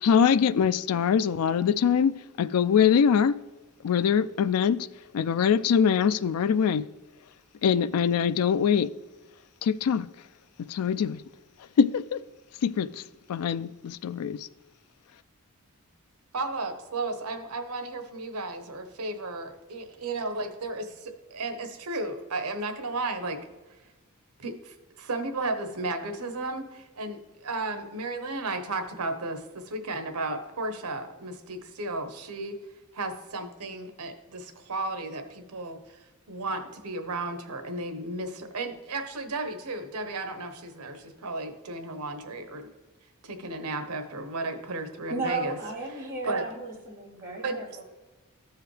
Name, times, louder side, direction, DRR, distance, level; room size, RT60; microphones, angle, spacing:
voice 1, 0.0-3.4 3.8-4.9 5.1-6.8 7.6-8.9 9.6-10.1 10.7-11.2 11.8-12.2 12.6-13.0 13.3-14.5, left 7 dB, 75° left, 0.4 m, -23 dB
voice 2, 16.3-23.4 24.4-32.6 32.9-35.8 36.3-42.7 43.2-45.6 46.2-46.5 47.4-47.6, right 2 dB, 85° right, 1.0 m, -34 dB
voice 3, 45.1-47.8, right 3 dB, 15° right, 2.8 m, -34 dB
14.0 x 4.8 x 3.2 m
head